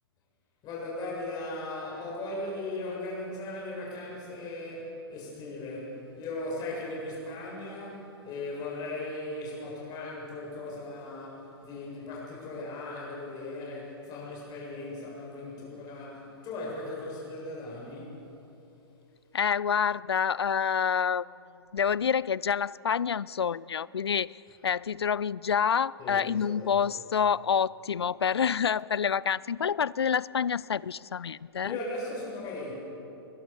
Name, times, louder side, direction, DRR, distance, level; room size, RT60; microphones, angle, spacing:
voice 1, 0.6-18.2 26.0-26.8 31.6-32.7, left 2 dB, 30° left, -4 dB, 7.4 m, -38 dB
voice 2, 19.3-21.3 21.7-31.8, left 7 dB, 80° left, 23 dB, 0.4 m, -27 dB
22.5 x 21.0 x 6.9 m, 3.0 s
figure-of-eight pair, 110°, 13 cm